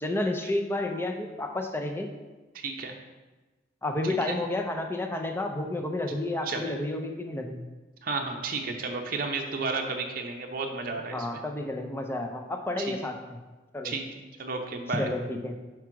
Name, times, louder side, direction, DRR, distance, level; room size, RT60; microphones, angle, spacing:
voice 1, 0.0-2.1 3.8-7.6 11.1-13.4 13.7-13.9 15.0-15.6, left 2 dB, 10° left, 3 dB, 0.5 m, -31 dB
voice 2, 2.5-2.9 4.3-4.4 6.4-6.6 8.0-11.3 12.8-13.0 13.8-14.0 14.4-15.1, right 4 dB, 50° right, 2 dB, 0.7 m, -32 dB
4.9 x 4.6 x 6.0 m, 1.2 s
head